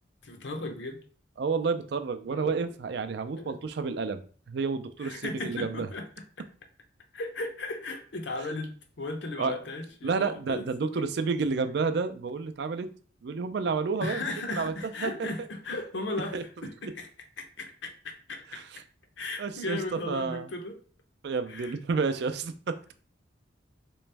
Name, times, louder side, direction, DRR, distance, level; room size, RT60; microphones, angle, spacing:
voice 1, 0.2-1.0 2.3-2.7 3.3-3.6 5.0-6.1 7.1-11.1 14.0-17.1 17.4-18.6 19.2-20.8 21.5-21.8, left 2 dB, 70° left, 4 dB, 0.7 m, -36 dB
voice 2, 1.4-4.2 4.5-5.9 9.4-9.6 10.0-12.9 13.2-14.2 14.5-14.7 15.0-15.1 16.3-16.4 18.5-18.6 19.4-19.8 20.1-20.5 21.2-22.9, right 4 dB, 60° right, 10 dB, 0.4 m, -30 dB
3.4 x 3.0 x 3.3 m, 0.43 s
head